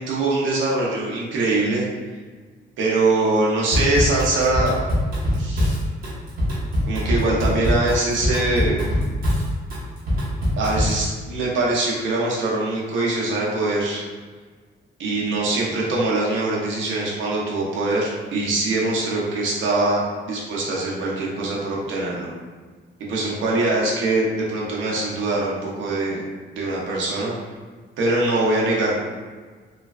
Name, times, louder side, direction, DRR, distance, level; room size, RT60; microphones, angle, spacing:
voice 1, 0.0-1.9 2.8-4.8 5.3-5.8 6.9-8.9 10.6-14.0 15.0-20.0 20.3-22.3 23.0-26.2 26.5-27.3 28.0-29.0, right 2 dB, 90° right, -4 dB, 0.8 m, -23 dB
Drum kit / Drum, 3.7-11.0, equal, 50° right, 1.0 m, -23 dB
3.2 x 2.2 x 2.3 m, 1.5 s
cardioid pair, 145°, 19 cm